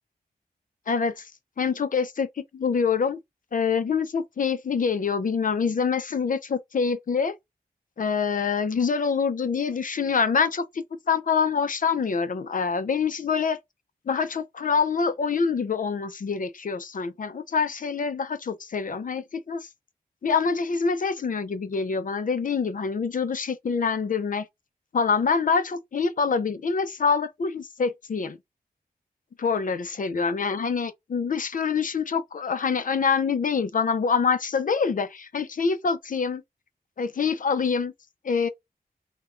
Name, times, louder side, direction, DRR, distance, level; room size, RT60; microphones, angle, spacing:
voice 1, 0.9-1.3 1.6-2.3 2.5-3.2 3.5-7.3 8.0-13.6 14.1-19.7 20.2-24.5 24.9-28.4 29.4-36.4 37.0-37.9 38.2-38.5, left 5 dB, 55° left, 0.5 m, -25 dB
3.4 x 2.2 x 2.4 m
wide cardioid pair, 80°, 16 cm